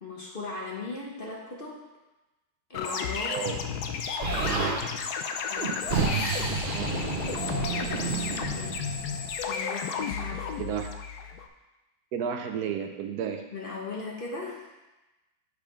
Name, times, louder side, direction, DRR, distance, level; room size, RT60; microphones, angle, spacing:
voice 1, 0.0-1.8 2.7-3.4 5.5-5.8 6.5-7.0 7.4-8.0 8.3-8.8 9.5-10.6 13.5-14.7, left 3 dB, 40° left, -3 dB, 1.0 m, -38 dB
sound 1, 2.7-11.5, left 6 dB, 75° left, 1.1 m, -33 dB
voice 2, 3.3-3.6 6.7-6.9 10.6-10.9 12.1-13.4, right 7 dB, 70° right, 5 dB, 1.1 m, -32 dB
Explosion, 4.2-4.8 5.6-9.4, right 5 dB, 40° right, 0.9 m, -30 dB
6.8 x 4.9 x 5.1 m, 1.1 s
omnidirectional pair, 1.8 m